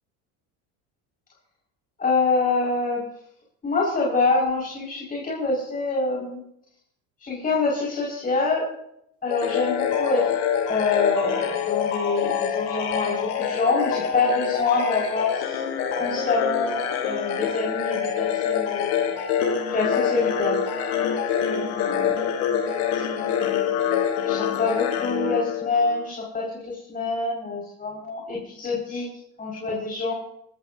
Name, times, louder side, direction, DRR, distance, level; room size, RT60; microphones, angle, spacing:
voice 1, 2.0-3.0 3.6-6.4 7.2-8.7 9.2-10.4 10.7-15.6 16.0-19.2 19.7-20.6 21.5-23.7 24.2-30.1, left 3 dB, 25° left, -4 dB, 5.6 m, -26 dB
sound 1, 9.3-26.0, left 8 dB, 85° left, 4.4 m, -26 dB
25.0 x 14.0 x 2.8 m, 0.75 s
supercardioid pair, 115°, 35 cm